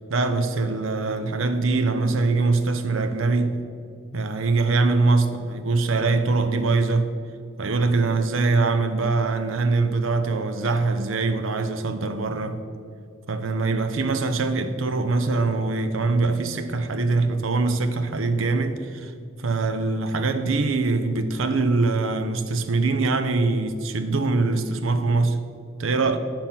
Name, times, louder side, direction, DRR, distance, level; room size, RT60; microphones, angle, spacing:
voice 1, 0.1-3.6 4.1-7.1 7.6-12.6 13.3-19.1 19.4-25.4 25.8-26.2, right 3 dB, 80° right, 0.7 m, -23 dB
8.8 x 5.9 x 5.7 m
head